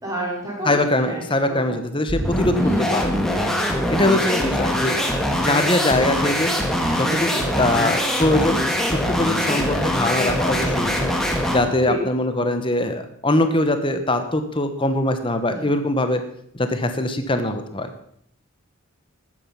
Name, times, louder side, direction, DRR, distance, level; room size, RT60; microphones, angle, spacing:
voice 1, 0.0-0.7 1.0-1.2 2.5-2.9 4.0-4.1 9.5-9.6 11.9-12.0 15.5-15.6, right 1 dB, 15° right, -3 dB, 4.2 m, -29 dB
voice 2, 0.6-3.1 3.9-5.0 5.4-6.5 7.0-8.6 8.9-11.0 11.5-16.2 16.6-17.9, left 1 dB, 20° left, 8 dB, 1.0 m, -22 dB
sound 1, 2.1-11.7, equal, ahead, 1.5 m, -22 dB
13.0 x 9.3 x 5.7 m, 0.68 s
head